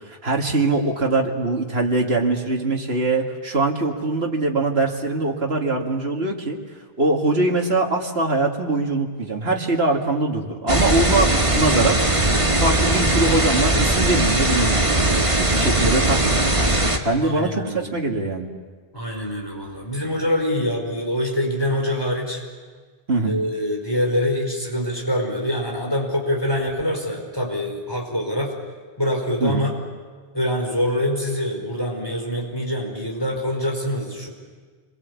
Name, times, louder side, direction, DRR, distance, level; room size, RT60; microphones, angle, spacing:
voice 1, 0.1-6.6 7.0-12.0 12.6-16.4 17.0-18.5 23.1-23.4 29.4-29.7, right 2 dB, 80° right, 1 dB, 2.4 m, -22 dB
sound 1, 10.7-17.0, right 1 dB, 30° right, 1.9 m, -19 dB
voice 2, 17.2-17.8 18.9-22.4 23.2-28.5 29.0-29.7 30.3-34.3, left 1 dB, 25° left, 1 dB, 5.0 m, -25 dB
28.5 x 22.5 x 8.4 m, 1.5 s
omnidirectional pair, 1.0 m